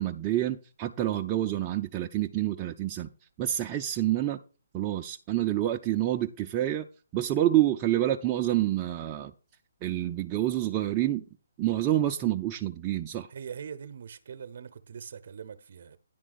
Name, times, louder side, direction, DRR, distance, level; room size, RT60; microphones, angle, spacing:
voice 1, 0.0-3.1 3.4-4.4 4.7-6.9 7.1-9.3 9.8-11.2 11.6-13.3, right 13 dB, 25° right, 0.4 m, -28 dB
voice 2, 13.3-16.0, right 7 dB, 55° right, 0.8 m, -42 dB
10.0 x 3.5 x 6.7 m
figure-of-eight pair, 140°, 0 cm